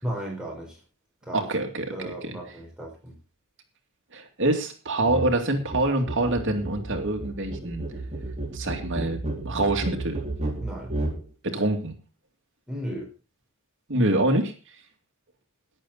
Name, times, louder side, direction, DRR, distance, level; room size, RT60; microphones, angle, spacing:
voice 1, 0.0-0.8 1.2-1.5 1.9-3.1 10.6-10.9 12.7-13.1, equal, 5° right, -2 dB, 4.5 m, -35 dB
voice 2, 1.3-2.1 4.1-7.8 8.5-10.2 11.4-11.9 13.9-14.5, right 2 dB, 60° right, 4 dB, 2.5 m, -25 dB
sound 1, 5.1-5.3 5.6-11.2, right 2 dB, 30° right, 4.0 m, -32 dB
13.5 x 11.0 x 4.1 m, 0.33 s
head